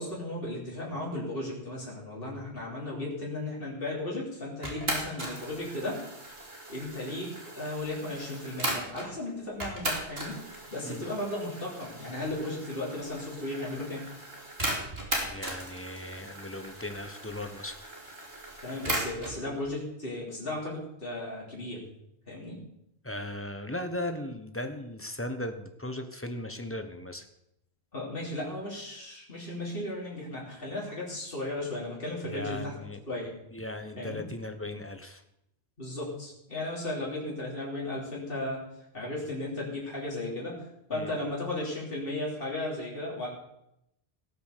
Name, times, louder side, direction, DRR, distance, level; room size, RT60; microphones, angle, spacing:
voice 1, 0.0-6.0 6.4-7.3 7.6-10.4 10.7-14.0 18.6-21.8 22.3-22.6 27.9-32.7 33.1-33.4 34.0-34.2 35.8-38.6 38.9-40.6 40.9-43.3, left 1 dB, 60° left, -5 dB, 3.7 m, -35 dB
sound 1, 4.6-9.1 9.6-19.4, right 1 dB, 65° right, 3.2 m, -37 dB
voice 2, 15.2-17.8 23.0-27.2 32.3-33.0 33.5-35.2 40.9-41.1, left 1 dB, 15° left, 7 dB, 1.1 m, -37 dB
17.5 x 6.8 x 6.7 m, 0.81 s
omnidirectional pair, 1.1 m